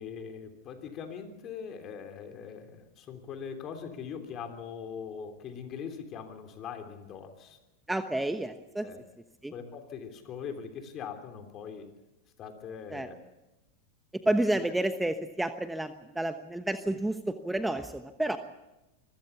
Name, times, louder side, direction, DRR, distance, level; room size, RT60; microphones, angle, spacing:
voice 1, 0.0-7.6 8.8-9.0 9.5-11.9 12.4-13.2, left 7 dB, 40° left, 6 dB, 3.3 m, -41 dB
voice 2, 7.9-8.9 9.4-9.5 12.9-13.1 14.2-18.4, right 1 dB, 5° right, 9 dB, 1.1 m, -30 dB
25.0 x 16.0 x 7.1 m, 1.0 s
hypercardioid pair, 100°, 0 cm